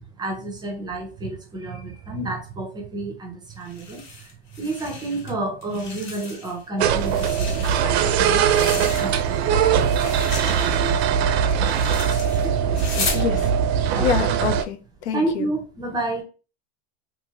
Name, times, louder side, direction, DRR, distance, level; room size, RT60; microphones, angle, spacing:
voice 1, 0.0-11.3 11.6-13.3 13.9-14.3 15.1-16.2, right 2 dB, 10° right, 0.5 m, -31 dB
sound 1, 3.6-5.3 5.6-6.6 6.9-9.4 9.8-13.3, left 3 dB, 35° left, 1.1 m, -34 dB
sound 2, 6.8-14.6, right 8 dB, 65° right, 0.5 m, -21 dB
voice 2, 13.1-13.5 14.0-15.5, left 8 dB, 75° left, 0.6 m, -26 dB
2.6 x 2.6 x 2.8 m
supercardioid pair, 125°, 34 cm